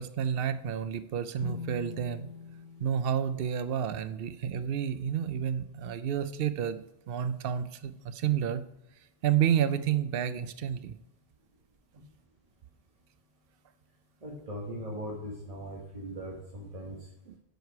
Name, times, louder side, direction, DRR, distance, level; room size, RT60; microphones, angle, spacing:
voice 1, 0.0-2.3 2.8-8.6 9.2-11.0 17.3-17.4, right 9 dB, 65° right, 13 dB, 0.8 m, -30 dB
sound 1, 1.4-4.9, left 6 dB, 5° left, 1.9 m, -45 dB
voice 2, 14.2-17.0, equal, 35° right, -2 dB, 1.4 m, -39 dB
11.5 x 4.8 x 4.6 m, 0.85 s
omnidirectional pair, 1.1 m